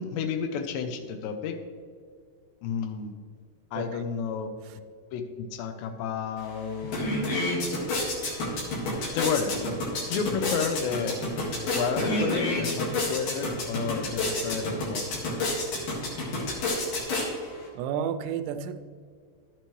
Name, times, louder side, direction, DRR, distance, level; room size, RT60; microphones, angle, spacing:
voice 1, 0.0-1.6 2.6-3.1 3.7-4.5 5.1-7.0 9.1-9.6 10.1-11.2 11.7-15.4, left 6 dB, 85° left, 8 dB, 3.0 m, -31 dB
sound 1, 6.4-6.5 6.8-17.7, left 1 dB, 60° left, 3.2 m, -29 dB
voice 2, 17.8-18.8, right 8 dB, 85° right, 9 dB, 2.6 m, -31 dB
12.0 x 9.0 x 3.2 m, 2.1 s
omnidirectional pair, 4.9 m